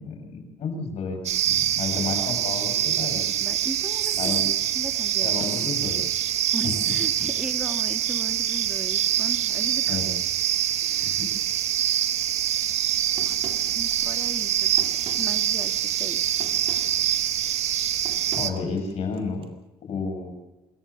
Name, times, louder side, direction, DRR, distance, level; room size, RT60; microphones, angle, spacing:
voice 1, 0.0-3.3 4.2-4.4 5.2-6.0 6.6-6.8 7.2-7.3 9.9-10.1 11.0-11.3 18.3-19.5 19.8-20.3, left 4 dB, 65° left, 5 dB, 6.6 m, -31 dB
sound 1, 1.2-18.5, right 11 dB, 75° right, 1.2 m, -25 dB
voice 2, 3.4-4.4 4.7-5.6 6.5-10.0 10.8-11.2 13.7-16.3, right 1 dB, 5° right, 5 dB, 1.6 m, -38 dB
sound 2, 13.1-19.5, right 5 dB, 55° right, 2.2 m, -45 dB
27.0 x 14.0 x 7.0 m, 1.1 s
cardioid pair, 90°, 12 cm